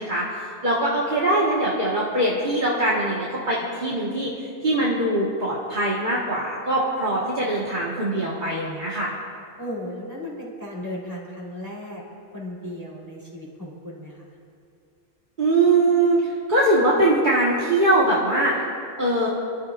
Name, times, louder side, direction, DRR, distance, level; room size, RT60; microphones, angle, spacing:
voice 1, 0.0-9.1 15.4-18.5 19.0-19.3, right 2 dB, 45° right, -6 dB, 1.8 m, -22 dB
voice 2, 9.6-12.0 12.3-14.3, left 1 dB, 15° right, -5 dB, 3.9 m, -35 dB
26.5 x 13.0 x 2.6 m, 2.4 s
omnidirectional pair, 1.2 m